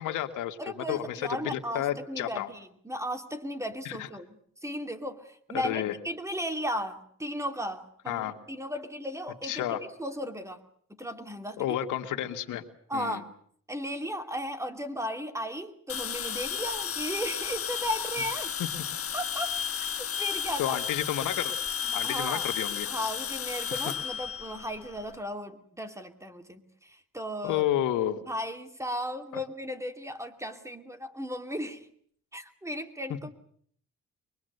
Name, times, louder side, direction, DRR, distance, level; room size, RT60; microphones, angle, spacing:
voice 1, 0.0-2.5 3.9-4.1 5.5-5.9 8.1-8.3 9.4-9.8 11.6-12.6 12.9-13.2 20.6-21.5 21.9-23.1 23.7-23.8 27.4-28.2, left 12 dB, 85° left, 7 dB, 1.9 m, -31 dB
voice 2, 0.6-10.6 10.9-11.8 12.9-13.3 13.7-18.5 19.1-19.6 20.0-20.8 21.8-22.5 22.9-27.7 28.3-31.9 32.3-33.3, equal, 10° right, 8 dB, 2.6 m, -36 dB
sound 1, 15.9-25.1, left 7 dB, 50° left, 1.3 m, -33 dB
23.5 x 22.0 x 8.0 m, 0.62 s
cardioid pair, 90°, 30 cm